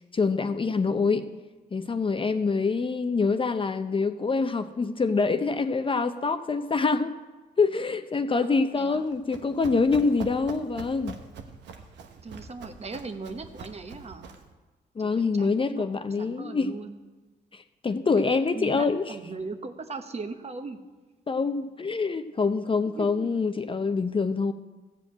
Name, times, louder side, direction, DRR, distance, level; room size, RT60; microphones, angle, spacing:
voice 1, 0.1-1.2 1.7-7.1 7.6-11.2 15.0-16.7 17.5-19.1 21.3-24.5, left 4 dB, 30° left, 9 dB, 0.6 m, -25 dB
voice 2, 8.4-9.1 12.2-14.3 15.0-15.9 16.2-17.0 18.2-20.8 22.9-23.1, right 3 dB, 35° right, 7 dB, 1.1 m, -38 dB
Run, 8.9-14.5, right 5 dB, 85° right, 1.0 m, -43 dB
14.0 x 5.0 x 8.7 m, 1.3 s
cardioid pair, 80°, 18 cm